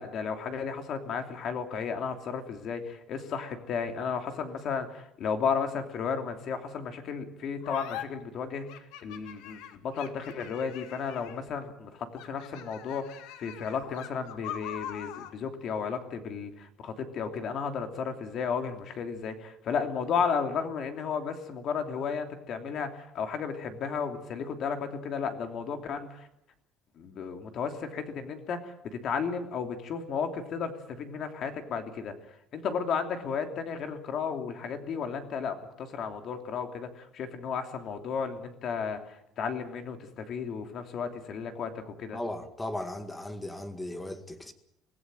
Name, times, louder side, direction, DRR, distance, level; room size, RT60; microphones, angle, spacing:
voice 1, 0.0-26.3 27.0-32.1 32.5-39.0 39.4-42.2, left 6 dB, 40° left, 3.0 m, -33 dB
sound 1, 7.6-8.0 8.7-11.5 12.1-15.4, left 11 dB, 80° left, 2.2 m, -42 dB
voice 2, 42.1-44.5, left 1 dB, 10° left, 1.9 m, -36 dB
25.0 x 17.0 x 9.1 m
cardioid pair, 170°, 0 cm